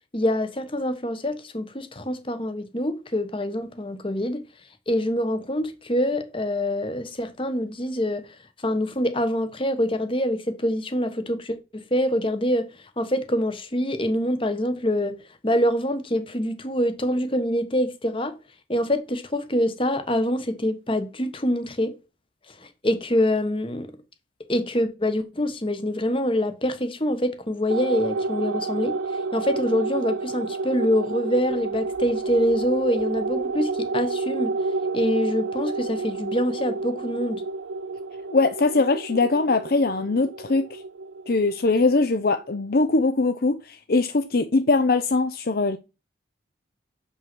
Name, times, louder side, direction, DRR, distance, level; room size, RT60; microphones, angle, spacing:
voice 1, 0.1-4.4 4.9-8.3 8.6-12.6 13.0-15.2 15.4-18.3 18.7-21.9 22.6-23.9 24.5-29.0 29.3-34.5 34.9-37.4, equal, 30° left, 1.1 m, -25 dB
sound 1, 27.7-42.5, right 3 dB, 90° right, 0.5 m, -30 dB
voice 2, 38.3-40.8 41.3-45.8, left 3 dB, 50° left, 0.6 m, -21 dB
7.2 x 5.6 x 6.1 m
head